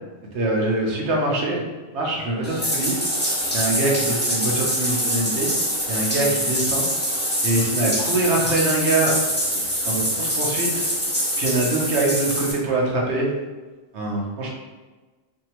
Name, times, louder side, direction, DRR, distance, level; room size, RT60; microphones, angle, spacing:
voice 1, 0.3-1.6 1.9-3.0 3.5-5.5 5.9-6.9 7.4-10.8 11.4-13.3 13.9-14.5, right 2 dB, 90° right, -2 dB, 1.2 m, -24 dB
Bathtub (filling or washing), 2.4-12.5, equal, 10° left, 1.1 m, -24 dB
4.4 x 2.7 x 2.9 m, 1.3 s
omnidirectional pair, 1.1 m